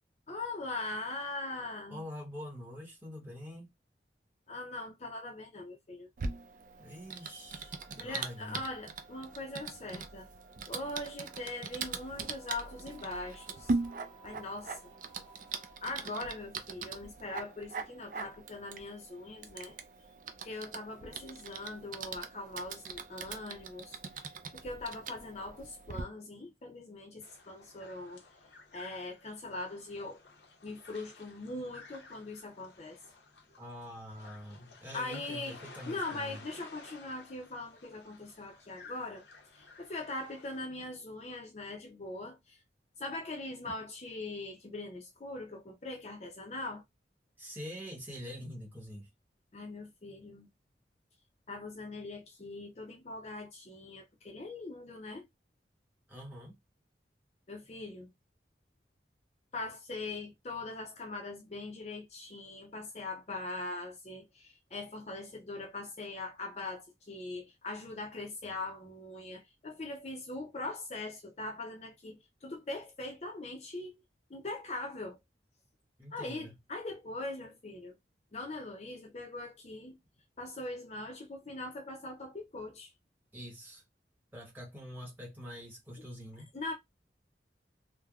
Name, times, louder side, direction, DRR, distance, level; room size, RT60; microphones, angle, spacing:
voice 1, 0.3-2.0 4.5-6.1 8.0-10.3 10.7-13.7 14.2-14.8 15.8-19.7 20.4-28.2 28.7-30.2 30.6-33.0 34.9-35.6 35.9-39.2 39.5-42.6 43.0-46.8 49.5-50.5 51.5-55.3 57.5-58.1 59.5-74.0 74.3-75.2 76.1-78.0 78.3-80.0 80.4-82.9 86.5-86.7, left 2 dB, 35° left, 0.5 m, -41 dB
voice 2, 1.9-3.7 6.8-8.6 33.6-36.4 47.4-49.1 56.1-56.6 76.0-76.5 83.3-83.8 84.3-86.5, equal, 10° right, 1.1 m, -45 dB
Typing, 6.2-26.0, right 4 dB, 50° right, 0.4 m, -41 dB
sound 1, 7.5-15.8, right 4 dB, 80° right, 1.4 m, -60 dB
sound 2, 27.2-40.7, left 3 dB, 85° left, 0.7 m, -54 dB
3.4 x 2.1 x 2.3 m
head